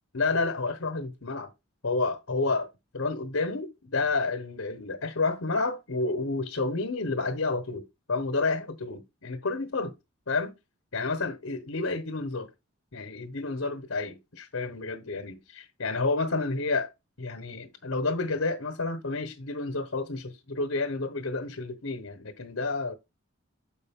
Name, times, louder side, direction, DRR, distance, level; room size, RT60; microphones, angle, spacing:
voice 1, 0.1-1.5 1.8-2.7 2.9-9.9 10.3-10.5 10.9-12.5 12.9-16.9 17.2-23.0, left 3 dB, 80° left, 1.1 m, -30 dB
7.8 x 5.1 x 3.6 m
head